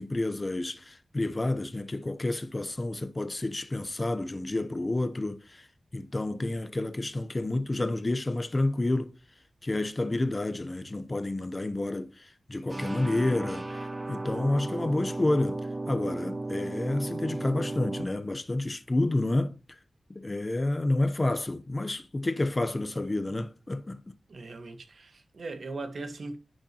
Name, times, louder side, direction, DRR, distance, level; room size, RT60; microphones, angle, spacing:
voice 1, 0.0-5.7 5.9-9.1 9.6-19.8 20.1-24.2, left 2 dB, 25° left, 0.7 m, -30 dB
sound 1, 12.7-18.1, right 2 dB, 25° right, 0.6 m, -35 dB
voice 2, 24.3-26.4, right 3 dB, 60° right, 1.3 m, -39 dB
10.0 x 6.4 x 2.9 m
wide cardioid pair, 135°, 0 cm